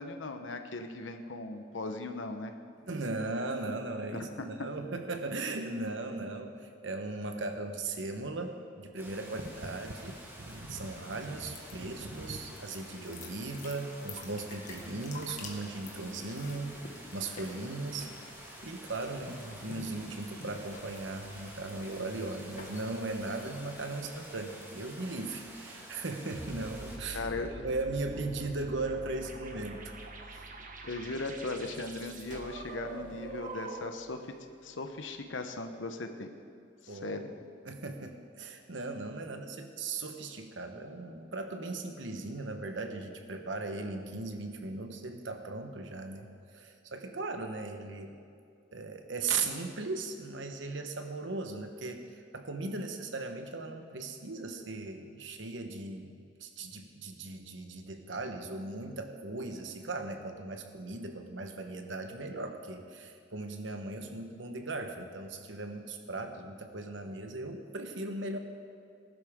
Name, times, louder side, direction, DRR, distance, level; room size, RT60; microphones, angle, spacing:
voice 1, 0.0-2.5 4.1-4.3 27.1-27.5 30.8-34.3 34.6-36.3 36.8-37.3, left 2 dB, 85° left, 6 dB, 1.0 m, -38 dB
voice 2, 2.8-18.1 18.6-29.9 30.3-30.4 36.9-37.3 37.6-48.2 48.7-68.4, right 3 dB, 75° right, 6 dB, 1.2 m, -38 dB
sound 1, 9.0-27.0, right 1 dB, 10° right, 1.9 m, -49 dB
sound 2, 11.5-24.6, left 2 dB, 45° left, 1.7 m, -50 dB
sound 3, 26.3-34.1, right 2 dB, 45° right, 1.2 m, -45 dB
19.5 x 11.5 x 3.7 m, 2.4 s
head